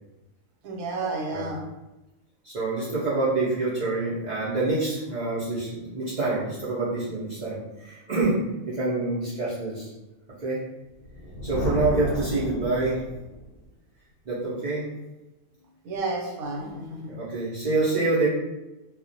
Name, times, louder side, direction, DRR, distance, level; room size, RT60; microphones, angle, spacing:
voice 1, 0.6-1.6 15.8-17.0, right 3 dB, 85° right, 0 dB, 1.1 m, -31 dB
voice 2, 2.4-8.4 8.7-9.9 10.4-10.6 11.4-13.0 14.2-14.9 17.1-18.3, right 3 dB, 60° right, -9 dB, 0.4 m, -26 dB
Thunder, 10.9-13.6, equal, 80° left, 0.5 m, -32 dB
2.3 x 2.1 x 2.5 m, 1.0 s
omnidirectional pair, 1.5 m